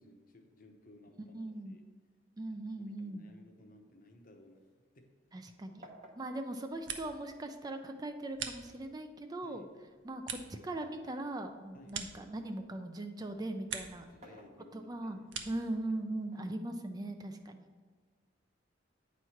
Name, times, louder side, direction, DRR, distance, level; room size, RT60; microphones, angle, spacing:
voice 1, 0.0-1.4 1.7-1.8 2.7-4.7 4.9-5.1 9.4-9.8 11.7-12.1 14.1-15.3, left 1 dB, 45° left, 4 dB, 0.8 m, -58 dB
voice 2, 1.3-1.8 2.4-3.3 5.3-5.9 6.2-9.6 10.0-14.1 14.7-17.7, right 1 dB, 20° right, 6 dB, 0.3 m, -40 dB
sound 1, 4.2-5.5 5.8-7.8 8.6-11.2 11.7-12.9 14.0-15.1 16.2-17.3, right 1 dB, 35° right, 0.8 m, -59 dB
sound 2, 6.5-7.4 7.7-9.1 9.6-12.8 13.2-14.1 14.4-15.7, right 7 dB, 70° right, 0.6 m, -45 dB
8.9 x 3.1 x 5.6 m, 1.5 s
head